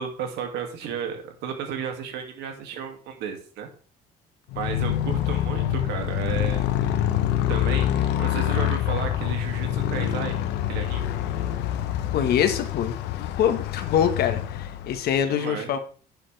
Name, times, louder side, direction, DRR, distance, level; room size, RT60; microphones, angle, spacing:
voice 1, 0.0-3.7 4.6-6.7 7.5-10.4 10.7-11.1 15.3-15.7, right 7 dB, 85° right, 4 dB, 2.5 m, -33 dB
Motorcycle, 4.5-15.2, left 11 dB, 85° left, 1.0 m, -26 dB
voice 2, 12.1-15.8, left 9 dB, 70° left, 8 dB, 1.5 m, -24 dB
11.0 x 7.0 x 3.4 m, 0.41 s
cardioid pair, 110°, 17 cm